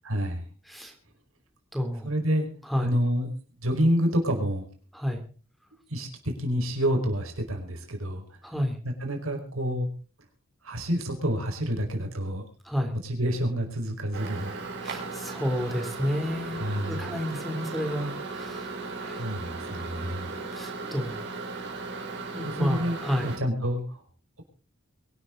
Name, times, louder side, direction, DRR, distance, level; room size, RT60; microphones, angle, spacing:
voice 1, 0.0-0.4 2.0-2.5 2.8-3.3 3.6-4.7 5.9-8.2 8.8-9.9 10.6-12.4 13.0-14.5 16.6-17.1 19.2-20.3 22.4-23.0 23.2-24.0, equal, 75° right, 4 dB, 5.1 m, -28 dB
voice 2, 1.7-2.1 2.7-2.9 4.9-5.2 8.4-8.8 12.6-12.9 14.8-18.7 19.0-19.2 20.5-21.2 22.3-23.3, equal, ahead, 5 dB, 3.3 m, -30 dB
Microwave oven, 14.1-23.4, right 3 dB, 60° right, 4.9 m, -36 dB
23.5 x 12.5 x 3.9 m, 0.38 s
head